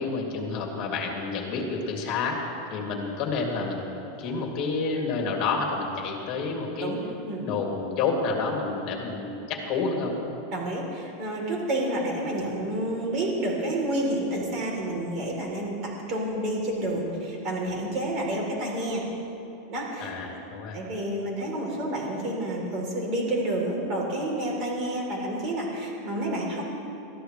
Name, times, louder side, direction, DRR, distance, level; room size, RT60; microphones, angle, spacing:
voice 1, 0.0-3.8 4.2-6.9 7.4-10.1 20.0-20.8, left 4 dB, 35° left, 0 dB, 2.6 m, -29 dB
voice 2, 10.5-19.0 19.7-20.1 20.7-26.6, right 1 dB, 35° right, -1 dB, 3.4 m, -29 dB
20.5 x 13.5 x 3.2 m, 2.9 s
supercardioid pair, 160°, 0 cm